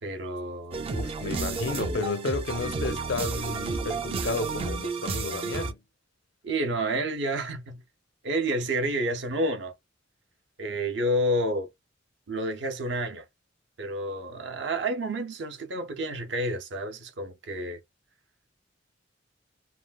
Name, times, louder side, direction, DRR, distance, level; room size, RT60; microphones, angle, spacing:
voice 1, 0.0-0.9 6.4-7.8 8.2-9.7 10.6-11.7 12.3-13.3 13.8-17.8, right 1 dB, 70° right, 0.7 m, -29 dB
sound 1, 0.7-5.7, right 4 dB, 30° right, 0.3 m, -31 dB
voice 2, 0.9-5.8, left 3 dB, 65° left, 0.5 m, -32 dB
3.1 x 2.3 x 2.3 m
head